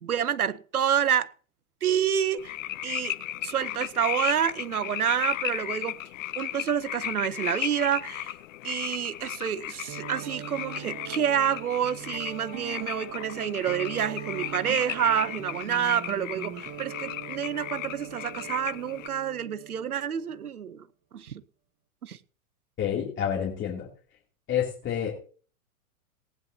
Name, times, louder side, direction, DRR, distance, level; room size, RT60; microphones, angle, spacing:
voice 1, 0.0-1.3 1.8-2.5 2.8-3.1 3.4-6.0 6.4-8.3 8.6-20.8 21.1-21.3 22.0-22.2, right 9 dB, 90° right, 0.9 m, -28 dB
sound 1, 2.4-19.1, left 14 dB, 60° left, 0.9 m, -36 dB
sound 2, 9.9-20.5, right 9 dB, 35° right, 1.7 m, -41 dB
voice 2, 22.8-23.9 24.5-25.2, left 9 dB, 25° left, 2.8 m, -28 dB
19.0 x 9.8 x 2.8 m
hypercardioid pair, 110°, 43 cm